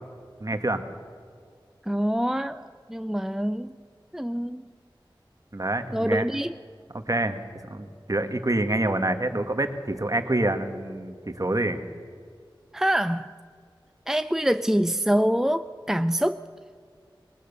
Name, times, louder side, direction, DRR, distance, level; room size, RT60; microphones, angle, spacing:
voice 1, 0.4-0.8 5.5-6.3 6.9-7.4 7.7-11.8, right 1 dB, 40° right, 8 dB, 1.8 m, -27 dB
voice 2, 1.8-3.7 4.1-4.6 5.9-6.5 12.7-13.3 14.1-16.4, equal, 5° right, 11 dB, 0.5 m, -25 dB
20.5 x 20.0 x 6.9 m, 2.1 s
wide cardioid pair, 40°, 9 cm